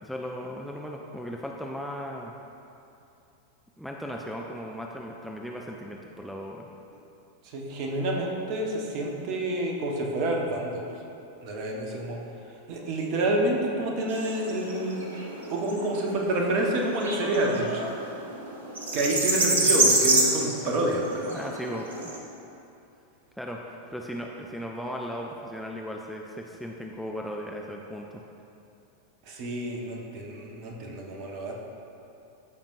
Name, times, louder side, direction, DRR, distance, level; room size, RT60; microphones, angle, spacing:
voice 1, 0.0-2.3 3.8-6.7 21.3-22.1 23.4-28.2, equal, ahead, -1 dB, 0.5 m, -37 dB
voice 2, 7.5-10.8 11.4-12.2 12.7-15.1 15.5-17.8 18.9-21.5 29.3-31.5, right 1 dB, 45° right, 0 dB, 1.1 m, -28 dB
sound 1, 14.1-22.2, right 2 dB, 70° right, 1.1 m, -27 dB
14.0 x 5.2 x 2.6 m, 2.7 s
figure-of-eight pair, 90°, 0 cm